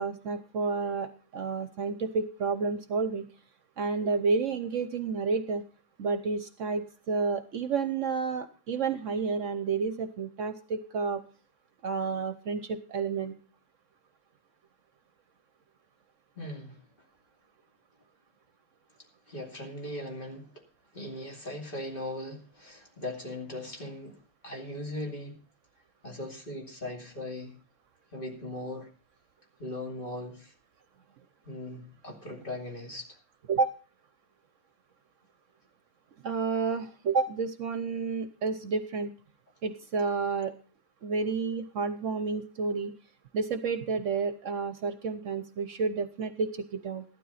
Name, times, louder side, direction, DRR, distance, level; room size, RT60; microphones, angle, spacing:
voice 1, 0.0-3.3 3.8-5.7 6.0-11.2 11.8-13.4 33.5-33.7 36.2-39.1 39.6-40.6 41.0-42.9 43.3-47.0, right 4 dB, 65° right, 1.1 m, -30 dB
voice 2, 16.4-16.8 19.3-20.5 20.9-25.4 26.0-27.5 28.1-28.9 29.6-30.5 31.4-33.1, left 1 dB, 35° left, 2.9 m, -39 dB
14.0 x 12.0 x 4.1 m
omnidirectional pair, 1.5 m